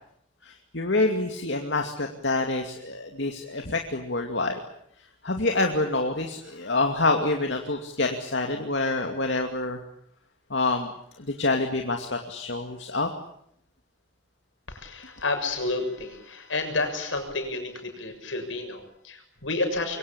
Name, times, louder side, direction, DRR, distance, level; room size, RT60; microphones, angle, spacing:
voice 1, 0.4-4.6 5.0-9.8 10.5-13.1, left 2 dB, 70° left, 4 dB, 2.5 m, -27 dB
voice 2, 14.7-20.0, left 2 dB, 85° left, 5 dB, 6.9 m, -30 dB
26.5 x 23.5 x 8.8 m, 0.70 s
head